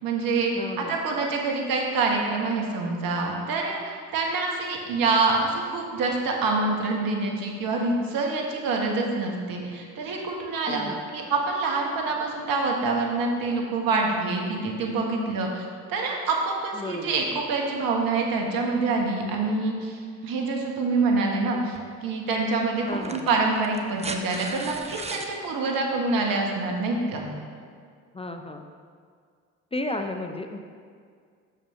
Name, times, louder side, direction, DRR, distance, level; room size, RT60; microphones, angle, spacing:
voice 1, 0.0-0.5 0.8-27.3, right 3 dB, 65° right, 1 dB, 1.5 m, -26 dB
voice 2, 0.6-0.9 10.7-11.1 16.7-17.2 22.9-23.3 28.1-28.7 29.7-30.6, left 2 dB, 15° left, 5 dB, 0.6 m, -33 dB
sound 1, 21.7-21.9 22.9-25.3 26.8-26.9, right 3 dB, 15° right, 0.8 m, -37 dB
6.9 x 5.8 x 5.7 m, 2.1 s
hypercardioid pair, 55°, 37 cm